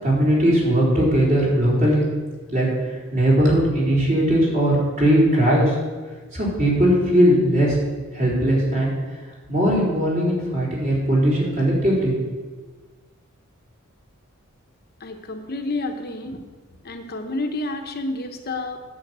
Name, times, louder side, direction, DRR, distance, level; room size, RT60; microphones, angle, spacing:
voice 1, 0.0-2.0 2.5-5.7 6.3-7.8 8.1-8.9 9.5-12.2, equal, 40° right, -5 dB, 3.8 m, -19 dB
voice 2, 15.0-16.4 16.8-18.8, left 2 dB, 45° left, 5 dB, 0.8 m, -29 dB
9.4 x 5.8 x 8.1 m, 1.3 s
head